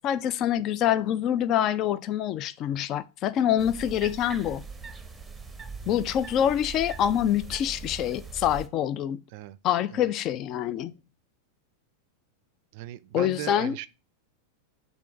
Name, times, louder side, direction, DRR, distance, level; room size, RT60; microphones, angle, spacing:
voice 1, 0.0-4.6 5.9-9.2 9.6-11.0 13.1-13.7, left 10 dB, 35° left, 0.4 m, -26 dB
sound 1, 3.6-8.7, right 4 dB, 5° right, 0.7 m, -41 dB
voice 2, 12.7-13.9, right 14 dB, 45° right, 0.4 m, -38 dB
6.9 x 2.8 x 5.7 m
figure-of-eight pair, 90°, 0 cm